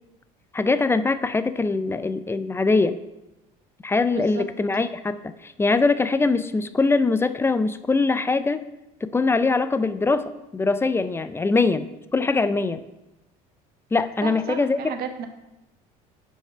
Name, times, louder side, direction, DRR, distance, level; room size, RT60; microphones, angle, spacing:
voice 1, 0.5-3.0 3.8-8.6 9.0-12.8 13.9-14.9, left 3 dB, 15° left, 12 dB, 0.4 m, -22 dB
voice 2, 4.2-4.5 14.2-15.3, right 7 dB, 55° right, 7 dB, 0.9 m, -33 dB
5.4 x 4.7 x 5.5 m, 0.95 s
supercardioid pair, 85°, 18 cm